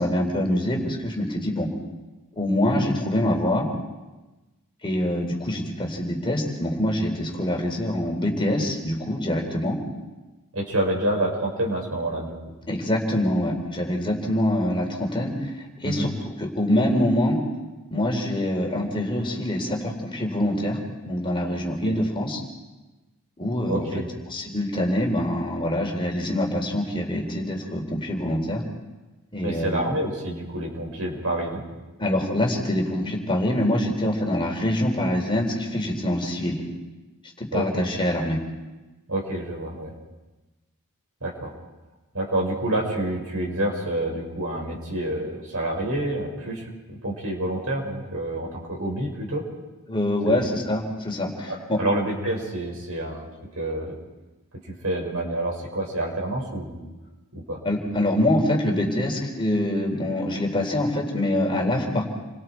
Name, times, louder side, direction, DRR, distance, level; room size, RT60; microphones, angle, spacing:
voice 1, 0.0-1.7 2.3-3.7 4.8-9.8 12.7-16.1 16.4-17.4 17.9-20.8 21.0-22.4 23.4-23.9 24.3-28.6 29.3-29.7 32.0-36.6 37.4-38.4 49.9-51.8 57.6-62.1, left 1 dB, 25° left, 1 dB, 3.8 m, -25 dB
voice 2, 10.5-12.3 15.8-16.1 21.8-22.0 23.4-24.1 29.4-31.6 37.5-37.9 39.1-39.9 41.2-41.5 42.1-49.5 50.3-50.4 51.5-53.3 53.6-54.0 54.7-56.8 57.3-57.6, right 1 dB, 70° right, 0 dB, 5.9 m, -28 dB
29.5 x 23.5 x 4.6 m, 1.1 s
head